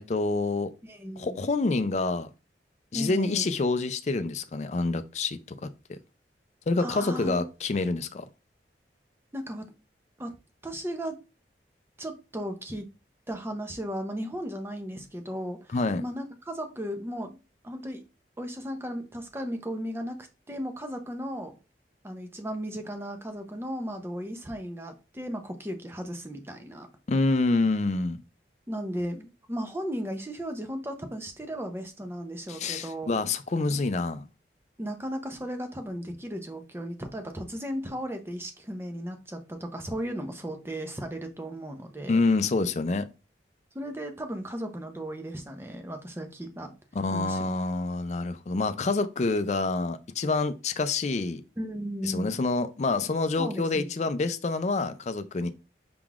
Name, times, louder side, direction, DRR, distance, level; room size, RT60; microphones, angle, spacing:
voice 1, 0.0-0.7 1.2-2.3 2.9-5.7 6.7-8.3 15.7-16.0 27.1-28.2 32.5-34.3 42.1-43.1 47.0-51.4 52.0-55.5, left 3 dB, 40° left, 0.4 m, -27 dB
voice 2, 0.8-1.4 2.9-3.5 6.8-7.4 9.3-9.7 10.2-10.3 10.6-11.2 12.0-12.9 13.3-17.4 17.6-18.0 18.4-21.6 22.0-26.9 28.7-33.1 34.8-42.2 43.7-46.7 47.1-47.5 51.6-52.4 53.4-53.9, equal, 15° right, 0.6 m, -35 dB
5.8 x 3.7 x 2.4 m
head